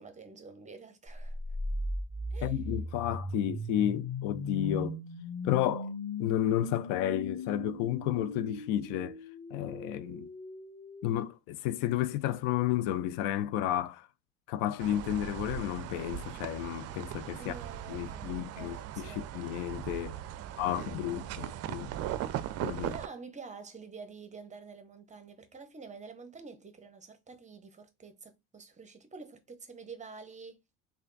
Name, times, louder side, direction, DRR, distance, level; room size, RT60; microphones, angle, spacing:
voice 1, 0.0-1.4 2.3-2.6 17.4-19.4 20.4-21.9 22.8-30.6, right 4 dB, 20° right, 0.7 m, -48 dB
sound 1, 1.1-11.1, left 2 dB, 15° left, 1.7 m, -38 dB
voice 2, 2.4-5.0 5.4-5.9 6.2-9.2 9.5-10.3 11.0-14.1 14.5-17.5 17.9-20.2 20.6-21.9 22.6-23.0, left 12 dB, 75° left, 0.5 m, -32 dB
sound 2, 14.8-23.1, right 12 dB, 45° right, 0.4 m, -39 dB
3.2 x 2.4 x 3.9 m
supercardioid pair, 105°, 35 cm